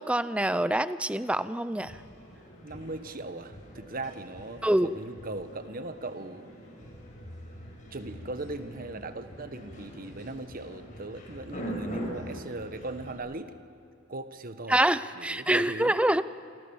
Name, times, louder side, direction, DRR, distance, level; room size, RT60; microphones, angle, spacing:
voice 1, 0.0-1.9 4.6-4.9 14.7-16.2, right 1 dB, 5° right, 14 dB, 0.6 m, -25 dB
sound 1, 1.8-13.1, equal, 35° left, 7.4 m, -43 dB
voice 2, 2.6-6.5 7.9-13.6 14.1-14.8 15.1-16.0, right 2 dB, 40° right, 10 dB, 1.4 m, -39 dB
29.0 x 26.5 x 7.2 m, 2.7 s
head